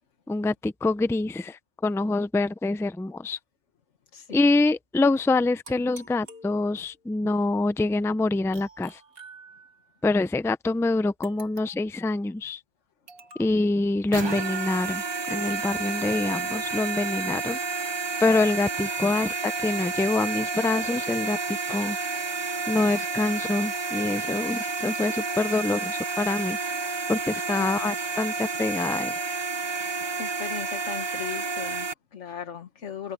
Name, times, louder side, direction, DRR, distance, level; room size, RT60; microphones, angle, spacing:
voice 1, 0.3-3.4 4.3-9.0 10.0-12.6 13.4-17.9 18.2-22.0 22.7-26.6 27.1-29.1, left 2 dB, 5° left, 0.4 m, -26 dB
voice 2, 4.1-4.5 27.5-27.9 29.8-33.1, left 8 dB, 85° left, 1.6 m, -38 dB
sound 1, 5.6-7.1 8.5-10.0 11.2-12.0 13.1-13.6 14.4-14.7, right 2 dB, 55° right, 2.1 m, -49 dB
sound 2, 14.1-31.9, right 4 dB, 25° right, 0.7 m, -30 dB
open air
omnidirectional pair, 1.2 m